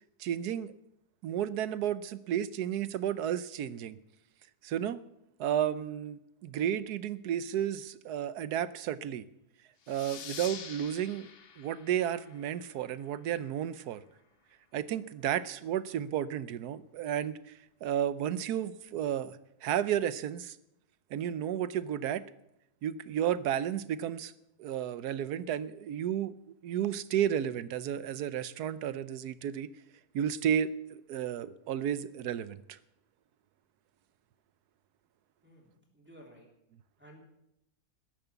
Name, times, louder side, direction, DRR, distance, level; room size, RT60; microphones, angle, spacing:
voice 1, 0.2-0.7 1.2-4.0 4.6-5.0 5.4-9.2 9.9-11.3 11.6-14.0 14.7-17.4 17.8-20.6 21.1-22.2 22.8-24.3 24.6-26.3 26.6-29.7 30.1-32.8, right 10 dB, 85° right, 15 dB, 1.3 m, -32 dB
sound 1, 9.8-13.1, left 7 dB, 50° left, 0.8 m, -46 dB
voice 2, 35.4-36.5 37.0-37.2, equal, 5° right, -2 dB, 3.1 m, -55 dB
13.0 x 10.5 x 8.2 m, 0.85 s
omnidirectional pair, 1.6 m